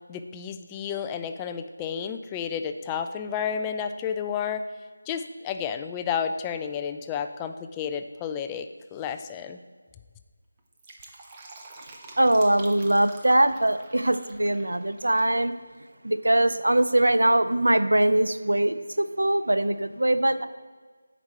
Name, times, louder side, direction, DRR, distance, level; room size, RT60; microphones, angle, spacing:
voice 1, 0.1-4.7 5.1-9.6, left 7 dB, 10° left, 7 dB, 0.3 m, -31 dB
Fill (with liquid), 10.6-15.4 15.7-15.8, right 2 dB, 20° right, 0.7 m, -47 dB
voice 2, 12.2-15.5 16.0-20.5, right 1 dB, 90° right, 11 dB, 0.5 m, -22 dB
9.5 x 5.1 x 4.3 m, 1.5 s
figure-of-eight pair, 170°, 0 cm